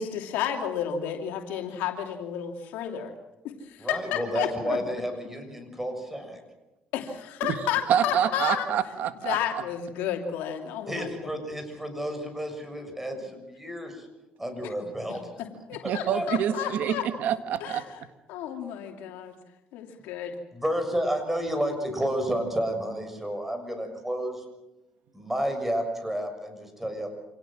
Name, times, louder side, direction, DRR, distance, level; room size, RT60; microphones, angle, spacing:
voice 1, 0.0-3.1 3.4-4.8 6.9-8.7 9.2-11.3 15.4-17.1 17.6-17.8 18.3-19.4 19.7-20.3, left 9 dB, 90° left, 3 dB, 2.8 m, -32 dB
voice 2, 3.8-6.4 10.9-14.1 14.4-15.3 15.8-16.2 16.6-16.7 20.5-24.4 25.1-27.1, equal, 10° right, 6 dB, 6.7 m, -31 dB
voice 3, 7.9-9.4 15.8-17.8, right 9 dB, 75° right, 10 dB, 1.8 m, -27 dB
27.0 x 18.0 x 7.6 m, 1.0 s
cardioid pair, 95°, 3 cm